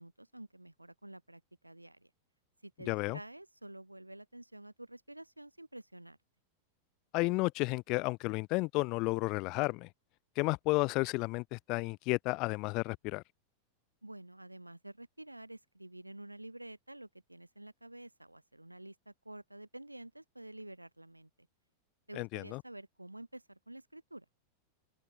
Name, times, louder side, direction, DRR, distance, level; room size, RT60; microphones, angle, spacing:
voice 1, 0.0-2.1 2.6-6.2 14.0-21.5 22.1-24.3, right 1 dB, 85° right, 3.5 m, -50 dB
voice 2, 2.9-3.2 7.1-9.9 10.4-13.2 22.2-22.6, left 25 dB, 40° left, 0.5 m, -32 dB
open air
figure-of-eight pair, 90°, 0 cm